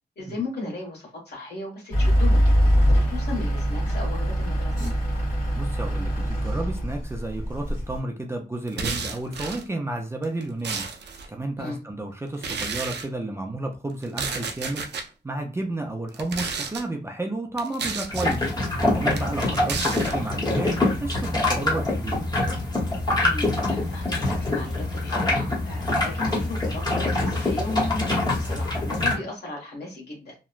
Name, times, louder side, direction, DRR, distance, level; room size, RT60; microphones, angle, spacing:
voice 1, 0.2-2.5 2.9-4.7 11.6-11.8 19.2-19.5 23.2-30.3, left 2 dB, 70° left, -2 dB, 1.3 m, -36 dB
Truck / Idling, 1.9-8.0, equal, 50° left, 1.2 m, -23 dB
voice 2, 5.5-10.8 11.3-18.5 18.9-22.2, right 2 dB, 15° right, 1 dB, 0.4 m, -32 dB
sound 1, 8.7-9.6 10.2-11.3 12.4-13.1 14.0-15.1 16.1-16.8 17.6-18.4 19.1-20.1, right 5 dB, 75° right, 0.5 m, -31 dB
sound 2, 18.1-29.1, left 2 dB, 25° left, 0.9 m, -25 dB
2.8 x 2.1 x 2.4 m, 0.32 s
wide cardioid pair, 150°, 18 cm